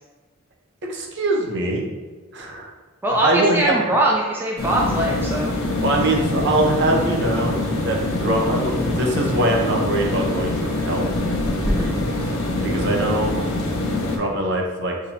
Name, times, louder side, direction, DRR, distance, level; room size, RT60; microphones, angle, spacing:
voice 1, 0.9-1.8 2.3-2.7 3.2-3.8 5.8-11.1 12.6-13.4 14.2-14.9, right 1 dB, 55° right, 0 dB, 0.7 m, -22 dB
voice 2, 3.0-5.6 11.6-12.0, right 1 dB, 10° right, -3 dB, 0.5 m, -22 dB
sound 1, 4.6-14.2, left 2 dB, 85° left, 0.9 m, -24 dB
5.8 x 2.9 x 2.8 m, 1.3 s
head